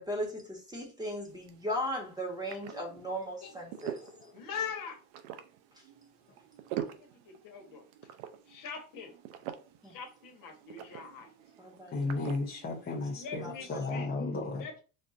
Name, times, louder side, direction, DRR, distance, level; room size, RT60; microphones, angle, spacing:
voice 1, 0.0-4.0 9.8-9.9 11.6-12.2 12.7-12.8 13.4-13.5, equal, 10° right, 1.2 m, -37 dB
sound 1, 1.1-14.0, right 11 dB, 85° right, 0.6 m, -46 dB
voice 2, 3.4-4.3 11.9-14.7, left 3 dB, 25° left, 0.7 m, -35 dB
voice 3, 4.3-5.0 6.7-7.8 8.5-9.1 9.8-11.3 13.1-14.1 14.5-14.8, left 6 dB, 55° left, 1.3 m, -42 dB
4.1 x 2.5 x 2.5 m
supercardioid pair, 105°, 40 cm